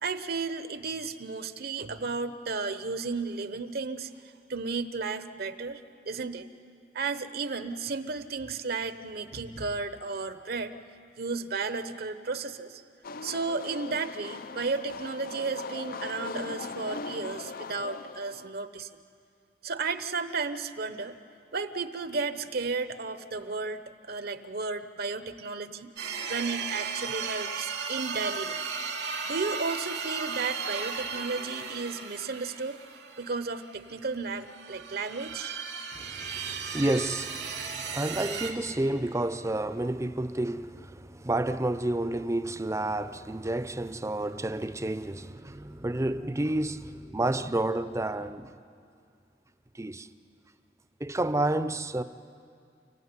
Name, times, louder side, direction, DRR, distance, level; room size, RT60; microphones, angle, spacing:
voice 1, 0.0-4.1 4.5-5.8 6.1-6.5 6.9-10.8 11.2-12.8 13.2-18.9 19.6-21.2 21.5-25.9 26.3-28.6 29.3-32.8 33.2-35.6, right 4 dB, 60° right, 0.9 m, -33 dB
sound 1, 13.0-18.5, left 4 dB, 55° left, 0.6 m, -39 dB
sound 2, 26.0-33.9 34.4-38.5, right 5 dB, 85° right, 2.7 m, -36 dB
voice 2, 35.9-48.5 49.8-50.1 51.0-52.0, right 1 dB, 15° right, 0.6 m, -30 dB
29.5 x 15.5 x 9.7 m
head